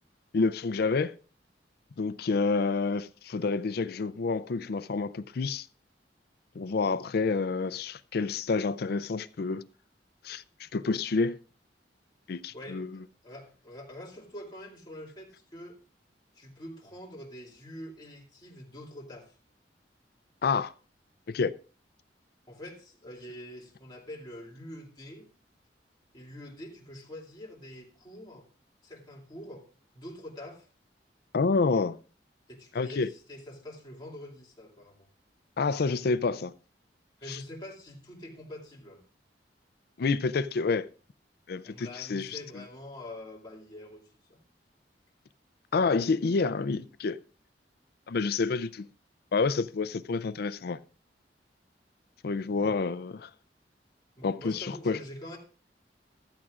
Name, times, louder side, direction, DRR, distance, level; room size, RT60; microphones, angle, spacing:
voice 1, 0.3-1.1 2.0-5.7 6.6-9.6 10.2-11.4 12.3-13.0 20.4-20.7 21.3-21.5 31.3-32.0 32.7-33.1 35.6-36.5 37.3-37.4 40.0-40.9 41.5-42.6 45.7-47.2 48.1-48.9 49.3-50.8 52.2-53.3 54.2-55.0, left 4 dB, 60° left, 0.4 m, -28 dB
voice 2, 12.5-15.8 16.4-19.3 22.5-25.3 26.1-28.5 28.8-29.7 29.9-30.7 32.5-35.1 37.2-39.0 41.6-44.4 54.2-55.4, left 1 dB, 25° left, 2.5 m, -45 dB
15.0 x 12.0 x 2.5 m
head